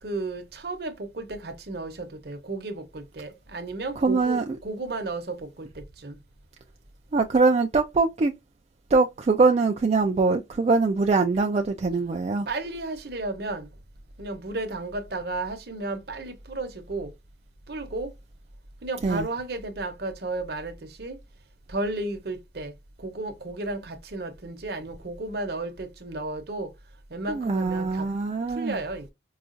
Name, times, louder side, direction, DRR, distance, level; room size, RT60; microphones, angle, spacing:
voice 1, 0.0-6.2 12.5-13.7 14.2-17.1 17.7-18.1 18.8-21.2 21.7-22.7 23.0-26.7 27.1-28.1 28.5-29.1, right 2 dB, 55° right, 0.8 m, -33 dB
voice 2, 4.0-4.4 7.1-8.3 8.9-12.5 19.0-19.3 27.3-28.8, right 3 dB, 35° right, 0.3 m, -23 dB
4.8 x 2.3 x 2.5 m
head